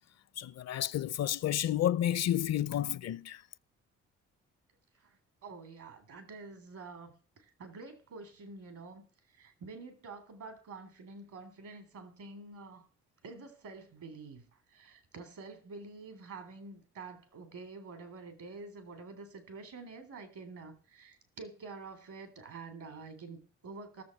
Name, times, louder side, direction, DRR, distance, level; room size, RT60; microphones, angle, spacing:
voice 1, 0.4-3.4, left 11 dB, 60° left, 0.6 m, -31 dB
voice 2, 5.4-9.0 9.4-12.8 13.2-14.5 14.7-24.0, right 4 dB, 75° right, 3.6 m, -48 dB
14.0 x 7.1 x 6.6 m
supercardioid pair, 60°, 30 cm